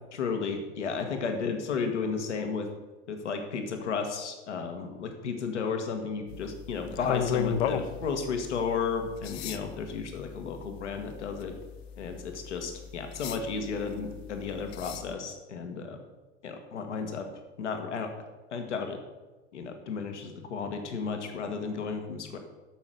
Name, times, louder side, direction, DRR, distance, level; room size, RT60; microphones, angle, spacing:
voice 1, 0.1-2.7 3.1-11.5 12.0-16.0 16.4-17.3 17.6-18.1 18.5-19.0 19.5-22.4, left 5 dB, 75° left, 5 dB, 1.6 m, -33 dB
sound 1, 6.3-15.1, left 8 dB, 60° left, 0.9 m, -36 dB
12.0 x 6.3 x 6.8 m, 1.2 s
hypercardioid pair, 90°, 35 cm